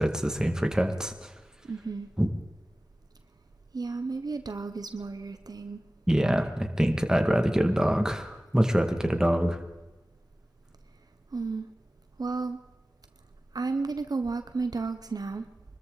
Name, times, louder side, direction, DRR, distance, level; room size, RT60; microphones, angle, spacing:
voice 1, 0.0-1.3 2.2-2.3 6.1-9.6, equal, 10° right, 5 dB, 2.2 m, -25 dB
voice 2, 1.7-2.1 3.7-5.8 11.3-11.7 12.2-12.6 13.5-15.4, right 4 dB, 60° right, 9 dB, 0.9 m, -32 dB
24.0 x 13.5 x 4.1 m, 1.1 s
cardioid pair, 45°, 7 cm